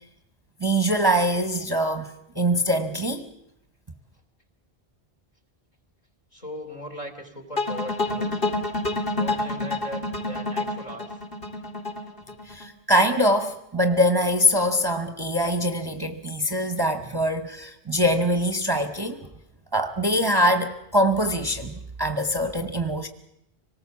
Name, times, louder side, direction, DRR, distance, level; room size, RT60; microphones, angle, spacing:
voice 1, 0.6-3.3 12.5-19.3 19.7-23.1, equal, 25° right, 7 dB, 1.1 m, -23 dB
voice 2, 6.3-8.4 9.1-11.2, equal, 40° left, 6 dB, 3.1 m, -38 dB
sound 1, 7.6-12.7, left 2 dB, 60° left, 2.3 m, -28 dB
25.5 x 19.0 x 7.3 m, 0.79 s
omnidirectional pair, 1.1 m